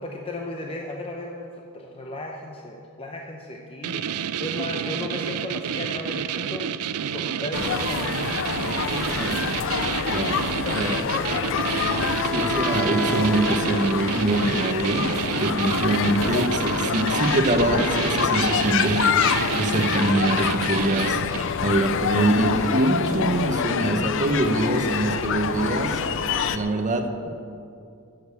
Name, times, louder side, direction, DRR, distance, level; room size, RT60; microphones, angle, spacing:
voice 1, 0.0-6.7 7.1-8.3 8.8-9.5 10.6-11.6 23.1-23.6 24.7-25.0, left 1 dB, 25° left, 1 dB, 0.8 m, -35 dB
sound 1, 3.8-21.6, right 8 dB, 85° right, 0.4 m, -30 dB
sound 2, 7.5-26.6, left 6 dB, 60° left, 0.5 m, -26 dB
voice 2, 10.1-10.4 10.7-11.0 12.2-26.0 26.5-27.3, right 1 dB, 35° right, 5 dB, 1.0 m, -24 dB
Wind instrument woodwind instrument, 10.9-14.5, right 1 dB, 5° left, 0.4 m, -32 dB
15.0 x 6.8 x 7.0 m, 2.5 s
head